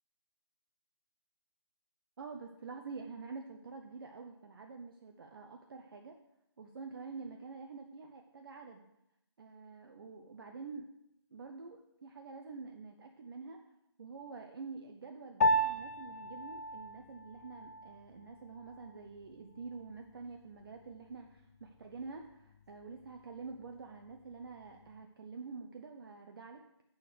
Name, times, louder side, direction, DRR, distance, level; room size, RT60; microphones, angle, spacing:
voice 1, 2.2-6.2 6.6-8.8 9.4-10.9 11.3-13.6 14.0-26.6, right 4 dB, 50° right, 3 dB, 0.8 m, -47 dB
Piano, 15.4-25.0, equal, 35° left, 0.4 m, -37 dB
6.5 x 6.4 x 6.8 m, 0.82 s
figure-of-eight pair, 155°, 15 cm